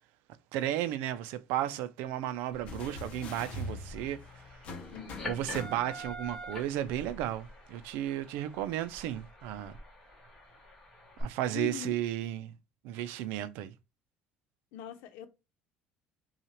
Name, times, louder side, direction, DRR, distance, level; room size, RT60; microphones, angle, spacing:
voice 1, 0.5-4.2 5.2-9.8 11.2-12.5 12.8-13.7, right 12 dB, 85° right, 0.5 m, -34 dB
sound 1, 2.5-11.2, left 1 dB, 10° left, 1.4 m, -47 dB
sound 2, 2.7-6.2 7.4-7.5, left 2 dB, 40° left, 0.8 m, -43 dB
voice 2, 4.9-5.6 11.5-11.9 14.7-15.3, left 8 dB, 80° left, 0.8 m, -41 dB
5.6 x 2.4 x 3.0 m
cardioid pair, 180°, 3 cm